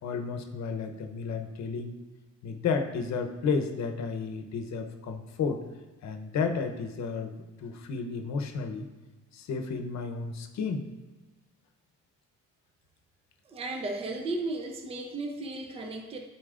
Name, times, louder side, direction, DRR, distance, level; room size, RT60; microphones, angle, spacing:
voice 1, 0.0-1.9 2.4-5.6 6.0-8.9 9.3-10.9, left 5 dB, 60° left, 5 dB, 0.8 m, -32 dB
voice 2, 13.5-16.2, right 2 dB, 20° right, 3 dB, 0.5 m, -35 dB
12.0 x 4.3 x 2.5 m, 1.2 s
cardioid pair, 145°, 32 cm